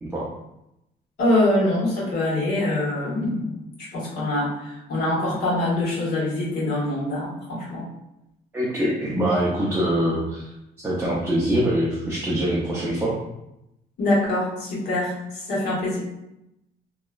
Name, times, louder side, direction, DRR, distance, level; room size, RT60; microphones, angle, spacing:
voice 1, 1.2-3.6 3.9-7.8 14.0-16.0, left 1 dB, 65° left, -6 dB, 1.3 m, -24 dB
voice 2, 8.5-10.5 10.8-13.2, equal, 15° right, -6 dB, 0.5 m, -24 dB
2.9 x 2.1 x 2.3 m, 0.87 s
cardioid pair, 110°, 17 cm